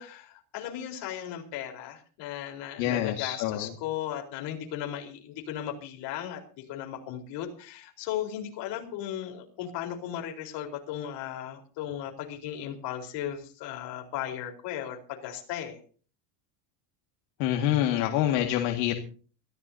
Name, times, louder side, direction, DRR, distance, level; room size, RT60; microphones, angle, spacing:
voice 1, 0.0-15.8, left 10 dB, 55° left, 2 dB, 4.3 m, -36 dB
voice 2, 2.8-3.7 17.4-18.9, left 12 dB, 80° left, 3 dB, 2.1 m, -26 dB
23.5 x 15.0 x 2.8 m, 0.40 s
cardioid pair, 155°, 50 cm